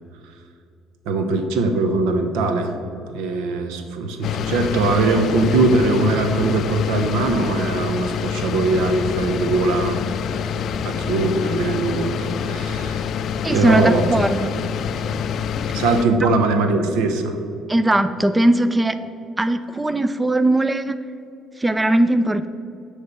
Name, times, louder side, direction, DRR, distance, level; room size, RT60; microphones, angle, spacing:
voice 1, 1.1-2.7 3.1-10.4 10.8-13.0 13.5-14.1 15.7-17.4, right 3 dB, 90° right, 6 dB, 0.9 m, -21 dB
sound 1, 4.2-16.0, left 7 dB, 60° left, 0.4 m, -26 dB
voice 2, 13.4-14.6 16.2-16.3 17.7-19.0 19.4-21.0 21.6-22.5, right 1 dB, 15° right, 11 dB, 0.4 m, -19 dB
9.6 x 3.3 x 6.9 m, 2.6 s
cardioid pair, 90°, 0 cm